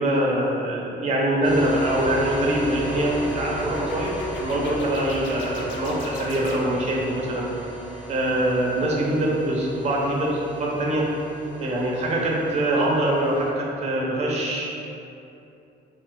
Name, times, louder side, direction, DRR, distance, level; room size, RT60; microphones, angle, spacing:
voice 1, 0.0-7.5 8.1-11.1 11.6-14.7, right 1 dB, 35° right, -3 dB, 0.6 m, -24 dB
sound 1, 1.4-13.5, right 1 dB, 20° left, 0.6 m, -37 dB
sound 2, 1.8-7.0, left 2 dB, 75° left, 0.4 m, -38 dB
2.5 x 2.4 x 3.6 m, 2.7 s
cardioid pair, 90°, 20 cm